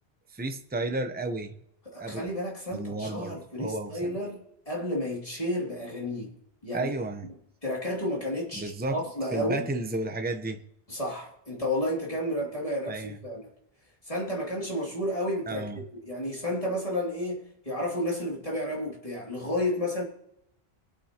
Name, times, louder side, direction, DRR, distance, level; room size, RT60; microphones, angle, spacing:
voice 1, 0.3-1.5 2.0-2.3 2.7-4.2 6.7-7.3 8.5-9.0 9.3-10.6 12.8-13.2 15.5-15.8, right 2 dB, 10° right, 0.7 m, -32 dB
voice 2, 1.9-6.3 6.6-6.9 7.6-9.7 10.9-13.5 14.1-20.0, left 1 dB, 35° left, 2.8 m, -31 dB
23.5 x 8.7 x 2.9 m
omnidirectional pair, 1.1 m